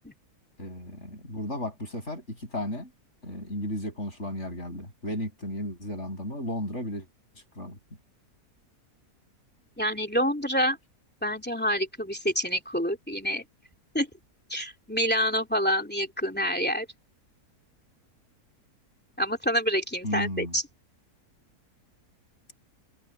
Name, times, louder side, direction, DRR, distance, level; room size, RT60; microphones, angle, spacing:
voice 1, 0.6-2.9 3.2-7.1 7.5-7.8 20.0-20.6, left 1 dB, 45° left, 8.5 m, -34 dB
voice 2, 9.8-10.8 11.2-13.4 13.9-14.1 14.5-16.9 19.2-20.6, equal, 5° left, 2.7 m, -27 dB
omnidirectional pair, 1.7 m